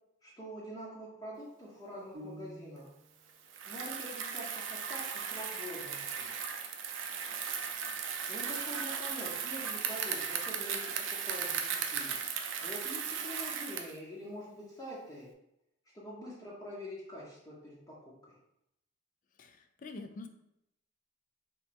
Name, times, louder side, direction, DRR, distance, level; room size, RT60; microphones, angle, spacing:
voice 1, 0.2-2.8 3.7-6.3 8.3-12.2 12.6-15.3 15.9-17.9 18.3-18.4, equal, 20° left, -7 dB, 0.8 m, -45 dB
sound 1, 2.1-3.2, right 1 dB, 65° right, 0.8 m, -49 dB
Bicycle, 3.5-14.0, right 7 dB, 80° right, 0.5 m, -37 dB
voice 2, 19.4-20.3, left 3 dB, 40° left, 7 dB, 0.4 m, -45 dB
3.2 x 3.1 x 4.2 m, 0.82 s
head